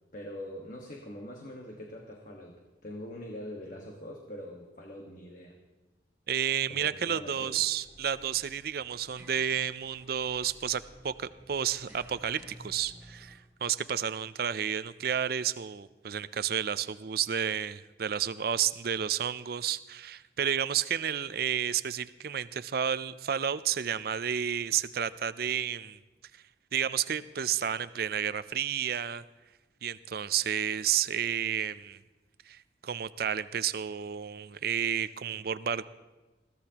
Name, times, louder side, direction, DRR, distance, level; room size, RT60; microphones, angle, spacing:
voice 1, 0.1-5.6 6.7-7.6, equal, 45° left, 0 dB, 1.4 m, -43 dB
voice 2, 6.3-26.0 26.7-29.2 29.8-32.0 32.5-35.8, right 8 dB, 55° right, 15 dB, 0.4 m, -31 dB
sound 1, 7.8-13.4, equal, 10° right, 3.9 m, -54 dB
21.5 x 15.0 x 2.9 m, 1.1 s
head